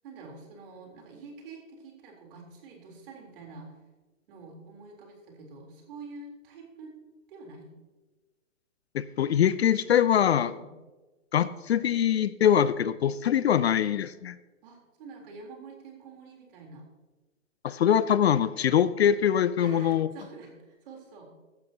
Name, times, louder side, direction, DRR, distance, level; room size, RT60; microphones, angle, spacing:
voice 1, 0.0-3.7 4.3-6.9 7.3-7.7 10.5-10.7 14.6-16.9 19.6-21.3, right 3 dB, 45° right, 0 dB, 3.8 m, -47 dB
voice 2, 8.9-10.5 11.3-14.4 17.6-20.1, left 9 dB, 55° left, 16 dB, 0.5 m, -23 dB
15.5 x 11.5 x 2.9 m, 1.2 s
hypercardioid pair, 140°, 40 cm